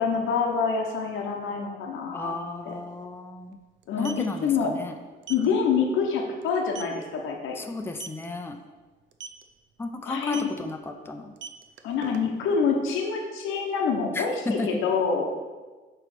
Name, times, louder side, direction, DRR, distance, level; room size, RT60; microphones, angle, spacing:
voice 1, 0.0-2.3 2.6-2.7 3.9-4.7 5.3-7.6 10.1-10.5 11.8-15.3, left 5 dB, 90° left, 1 dB, 1.1 m, -26 dB
voice 2, 2.1-3.6 4.0-5.0 7.5-8.6 9.8-11.3 14.1-14.8, left 2 dB, 10° left, 5 dB, 0.6 m, -33 dB
sound 1, 2.2-2.3 2.6-2.7 3.8-4.3 5.2-5.5 5.9-6.1 6.4-6.5 6.7-7.0 7.9-8.2 9.1-9.4 10.3-10.6 11.2-12.5, right 7 dB, 65° right, 0.6 m, -40 dB
7.0 x 3.3 x 6.1 m, 1.3 s
cardioid pair, 90°, 20 cm